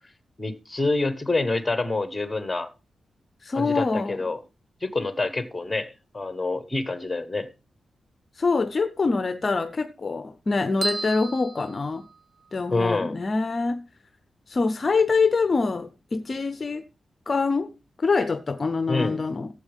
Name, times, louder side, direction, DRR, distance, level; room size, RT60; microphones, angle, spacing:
voice 1, 0.4-2.7 3.5-4.4 4.8-7.5 12.7-13.2 18.9-19.2, left 3 dB, 15° left, 1.2 m, -27 dB
voice 2, 3.4-4.2 8.3-12.1 12.5-13.8 14.5-16.8 17.3-17.7 18.0-19.5, left 4 dB, 30° left, 0.6 m, -25 dB
sound 1, 10.8-12.6, right 2 dB, 35° right, 0.9 m, -33 dB
15.5 x 8.0 x 3.5 m
wide cardioid pair, 175°, 0 cm